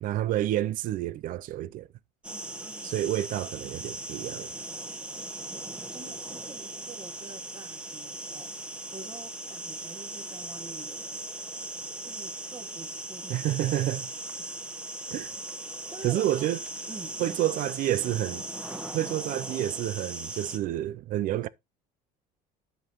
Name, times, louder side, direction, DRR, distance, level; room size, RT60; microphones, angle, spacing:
voice 1, 0.0-1.9 2.8-4.5 13.3-14.1 15.1-15.3 16.0-16.6 17.2-18.4 18.9-21.5, right 14 dB, 50° right, 0.5 m, -29 dB
sound 1, 2.2-20.6, right 1 dB, 5° right, 1.1 m, -39 dB
voice 2, 2.3-2.9 5.1-11.3 12.0-14.5 15.9-16.5 16.9-17.6, right 4 dB, 25° right, 1.4 m, -48 dB
9.6 x 7.8 x 3.0 m
cardioid pair, 145°, 17 cm